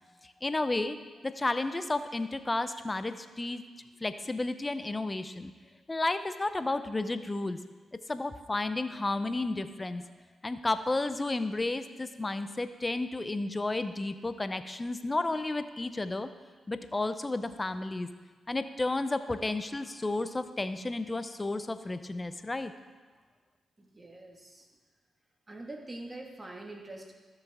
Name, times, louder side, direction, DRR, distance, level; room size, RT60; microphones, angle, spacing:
voice 1, 0.2-1.0 1.2-3.6 4.0-5.5 5.9-7.6 8.1-10.0 10.4-16.3 16.7-18.1 18.5-22.7, left 2 dB, 25° left, 11 dB, 0.6 m, -32 dB
voice 2, 23.8-24.7 25.5-27.1, right 2 dB, 25° right, 1 dB, 1.9 m, -44 dB
12.5 x 6.6 x 3.6 m, 1.4 s
supercardioid pair, 55°, 0 cm